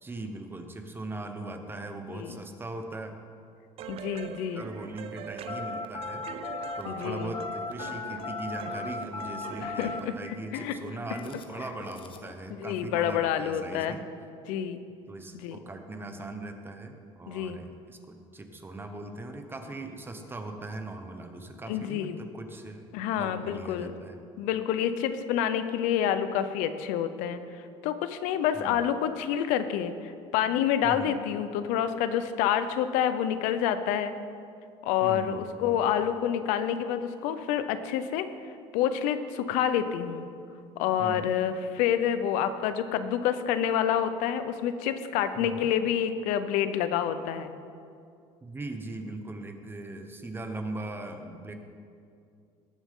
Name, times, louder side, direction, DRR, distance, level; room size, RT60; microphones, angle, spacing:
voice 1, 0.0-3.1 4.5-6.3 6.8-14.0 15.1-24.2 28.5-28.9 30.8-31.1 35.0-35.8 41.0-41.3 45.3-45.7 48.4-51.5, right 2 dB, 15° right, 5 dB, 1.2 m, -40 dB
voice 2, 2.1-2.4 3.9-4.6 6.9-7.3 9.6-10.1 10.5-10.7 12.6-14.0 14.5-14.8 15.3-15.6 17.3-17.6 21.7-22.2 22.9-23.9 24.4-27.4 27.8-29.9 30.3-34.1 34.8-38.3 38.7-40.3 40.8-47.5, left 9 dB, 80° left, 11 dB, 0.7 m, -28 dB
sound 1, 3.8-10.2, right 8 dB, 50° right, 0.6 m, -42 dB
Telephone, 5.5-12.3, left 4 dB, 40° left, 1.1 m, -38 dB
19.0 x 7.2 x 3.8 m, 2.4 s
cardioid pair, 105°, 13 cm